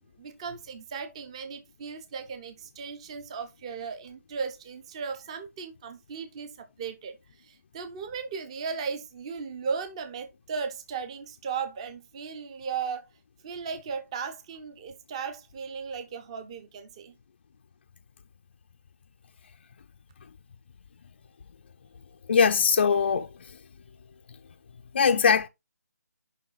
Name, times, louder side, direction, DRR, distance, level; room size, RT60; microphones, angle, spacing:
voice 1, 0.2-13.1 13.4-17.1, right 5 dB, 20° right, 0.7 m, -36 dB
voice 2, 22.3-23.3 24.9-25.5, left 6 dB, 35° left, 0.4 m, -21 dB
6.4 x 5.5 x 4.0 m
hypercardioid pair, 170°, 9 cm